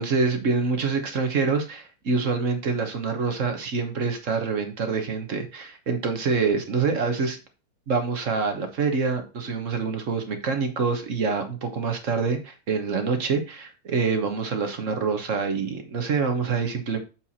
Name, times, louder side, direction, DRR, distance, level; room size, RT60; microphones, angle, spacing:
voice 1, 0.0-7.4 7.9-17.0, right 4 dB, 55° right, 6 dB, 1.5 m, -26 dB
7.6 x 4.5 x 4.2 m, 0.30 s
omnidirectional pair, 1.6 m